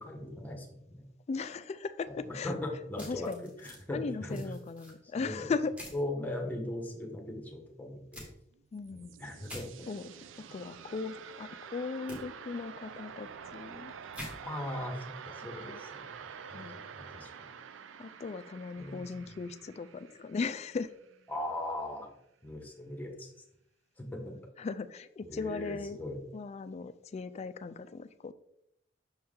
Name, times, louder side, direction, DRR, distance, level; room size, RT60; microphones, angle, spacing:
voice 1, 0.0-1.0 2.1-3.3 3.6-4.4 5.0-5.5 5.9-8.2 9.2-9.9 14.4-16.1 16.5-16.7 16.9-17.5 18.8-19.3 21.3-22.1 22.4-23.3 24.0-24.4 25.2-26.2, left 1 dB, 10° left, 2 dB, 1.1 m, -39 dB
voice 2, 1.3-2.5 3.1-3.5 3.9-5.7 8.7-9.1 9.9-10.1 10.5-13.9 15.6-15.8 16.5-16.8 18.0-20.9 24.6-26.0 26.3-28.3, left 4 dB, 35° left, 13 dB, 0.3 m, -38 dB
sound 1, 3.0-3.8 4.3-4.9 5.8-6.0 8.1-8.3 9.4-9.6 12.1-12.2 14.1-14.3, equal, 5° right, 1.7 m, -45 dB
sound 2, 8.5-21.4, right 7 dB, 90° right, 0.4 m, -48 dB
6.2 x 4.3 x 3.7 m, 0.78 s
head